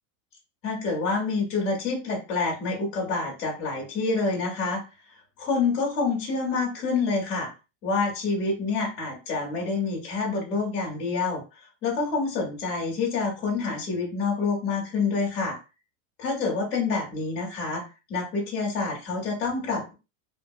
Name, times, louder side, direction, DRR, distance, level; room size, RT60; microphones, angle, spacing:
voice 1, 0.6-4.8 5.4-7.5 7.8-11.4 11.8-15.6 16.2-17.8 18.1-19.9, left 4 dB, 15° left, -3 dB, 0.3 m, -27 dB
2.7 x 2.4 x 2.2 m, 0.29 s
supercardioid pair, 165°, 48 cm